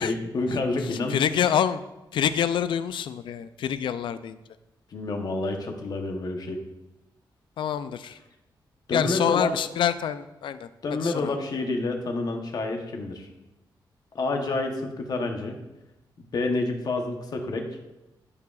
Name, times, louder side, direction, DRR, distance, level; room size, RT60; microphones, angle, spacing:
voice 1, 0.0-1.2 4.9-6.6 8.9-9.5 10.8-13.3 14.1-15.6 16.3-17.7, left 2 dB, 55° left, 4 dB, 1.0 m, -28 dB
voice 2, 1.1-1.8 2.1-4.4 7.6-8.2 8.9-10.7 11.0-11.3, left 9 dB, 85° left, 13 dB, 0.4 m, -26 dB
12.5 x 4.8 x 2.4 m, 0.97 s
wide cardioid pair, 150°, 8 cm